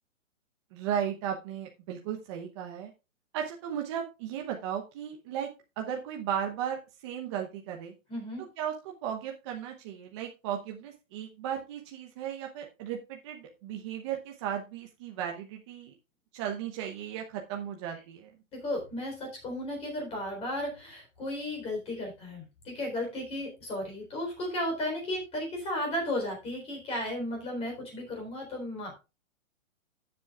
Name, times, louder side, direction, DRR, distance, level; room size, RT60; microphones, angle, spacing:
voice 1, 0.7-2.9 3.3-5.5 5.8-7.9 8.6-15.9 16.3-18.3, right 9 dB, 20° right, 2 dB, 0.9 m, -35 dB
voice 2, 8.1-8.4 18.5-28.9, left 1 dB, 15° left, 1 dB, 3.9 m, -34 dB
13.0 x 7.8 x 2.4 m, 0.27 s
hypercardioid pair, 160°, 40 cm